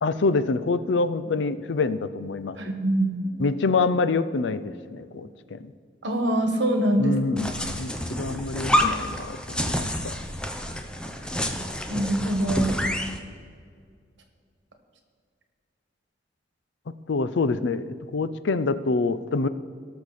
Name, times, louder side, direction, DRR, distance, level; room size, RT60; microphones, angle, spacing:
voice 1, 0.0-2.6 3.4-5.6 7.0-7.9 8.2-10.1 17.1-19.5, left 3 dB, 75° left, 14 dB, 0.5 m, -26 dB
voice 2, 2.6-3.3 6.0-7.2 11.9-12.7, right 1 dB, 75° right, 4 dB, 1.6 m, -24 dB
sound 1, 7.4-13.2, equal, 5° left, 0.7 m, -28 dB
18.0 x 6.5 x 4.2 m, 2.1 s
head